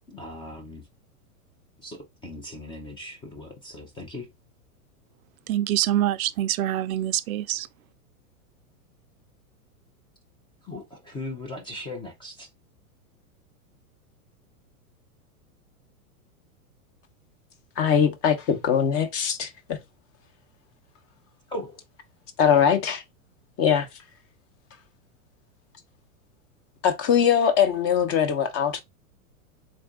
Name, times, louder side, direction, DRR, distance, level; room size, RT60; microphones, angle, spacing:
voice 1, 0.1-0.8 1.8-4.3 10.6-12.5 21.5-21.8, left 1 dB, 10° left, 0.4 m, -38 dB
voice 2, 5.5-7.7, right 12 dB, 70° right, 0.5 m, -25 dB
voice 3, 17.8-19.8 22.4-23.0 23.6-23.9 26.8-28.8, left 8 dB, 30° left, 0.8 m, -21 dB
3.6 x 2.6 x 3.5 m
hypercardioid pair, 125°, 44 cm